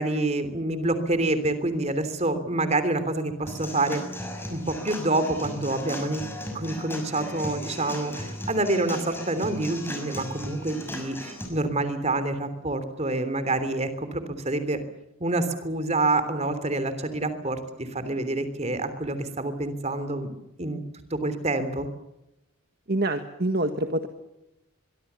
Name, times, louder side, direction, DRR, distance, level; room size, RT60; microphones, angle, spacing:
voice 1, 0.0-4.0 4.5-6.2 6.5-14.8 15.2-20.8 21.1-21.9, right 2 dB, 30° right, 11 dB, 3.3 m, -27 dB
Human voice / Acoustic guitar / Drum, 3.5-11.5, left 1 dB, 10° left, 6.1 m, -37 dB
voice 2, 22.9-24.1, right 1 dB, 45° right, 7 dB, 1.6 m, -26 dB
24.5 x 23.5 x 7.0 m, 0.91 s
head